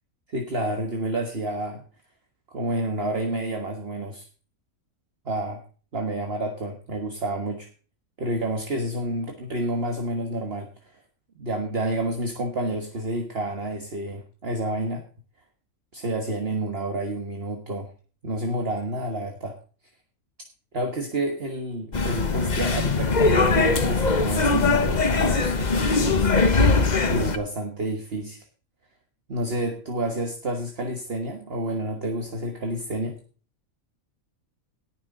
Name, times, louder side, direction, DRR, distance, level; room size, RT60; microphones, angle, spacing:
voice 1, 0.3-1.8 2.5-4.3 5.2-5.6 5.9-7.7 8.2-11.0 11.4-15.0 15.9-17.9 18.2-19.6 20.7-26.3 27.1-28.4 29.3-33.2, right 1 dB, 45° right, 4 dB, 1.7 m, -29 dB
sound 1, 21.9-27.4, left 3 dB, 35° left, 1.1 m, -21 dB
18.0 x 6.7 x 3.8 m, 0.39 s
omnidirectional pair, 1.5 m